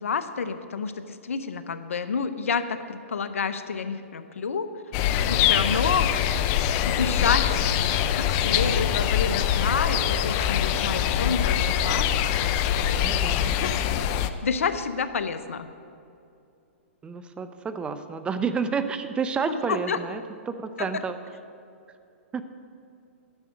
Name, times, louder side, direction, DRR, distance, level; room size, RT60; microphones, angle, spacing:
voice 1, 0.0-4.7 5.3-6.1 6.9-7.7 8.2-13.1 13.5-13.7 14.4-15.7 19.5-20.0 20.8-21.0, left 5 dB, 80° left, 11 dB, 0.7 m, -29 dB
sound 1, 4.9-14.3, left 9 dB, 35° left, 0.5 m, -24 dB
voice 2, 13.0-13.4 17.0-20.2 20.5-21.2 22.3-22.4, right 5 dB, 15° right, 10 dB, 0.5 m, -30 dB
10.5 x 6.3 x 7.7 m, 2.5 s
hypercardioid pair, 130°, 7 cm